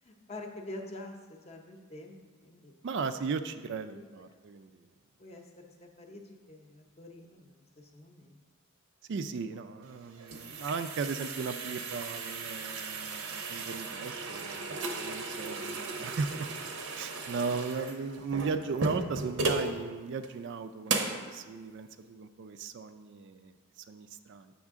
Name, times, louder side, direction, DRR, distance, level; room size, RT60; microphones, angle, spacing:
voice 1, 0.0-2.8 3.9-4.0 5.2-8.4 15.5-15.6, left 1 dB, 30° left, 3 dB, 0.6 m, -47 dB
voice 2, 2.8-4.8 9.1-16.5 16.9-24.5, right 5 dB, 55° right, 10 dB, 0.3 m, -36 dB
sound 1, 9.9-19.7 20.2-20.3 20.9-21.2, right 3 dB, 75° right, 0.7 m, -36 dB
7.4 x 5.8 x 3.6 m, 1.4 s
head